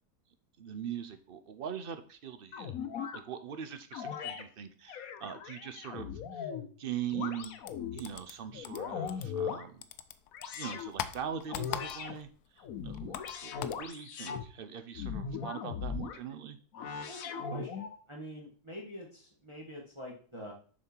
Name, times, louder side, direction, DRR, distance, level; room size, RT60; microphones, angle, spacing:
voice 1, 0.6-2.8 3.1-6.5 6.8-7.5 7.9-9.9 10.6-16.6, right 8 dB, 55° right, 10 dB, 0.6 m, -41 dB
sound 1, 2.5-3.2 3.9-4.4 4.9-6.7 7.1-8.0 8.5-9.7 10.3-10.9 11.5-12.1 12.6-14.5 14.9-16.2 16.7-18.0, left 7 dB, 70° left, 1.1 m, -39 dB
sound 2, 7.4-9.6 9.8-12.3 12.6-13.9, left 10 dB, 85° left, 1.1 m, -41 dB
voice 2, 17.1-20.5, equal, 20° right, -3 dB, 1.6 m, -46 dB
6.8 x 5.5 x 4.5 m, 0.42 s
omnidirectional pair, 1.7 m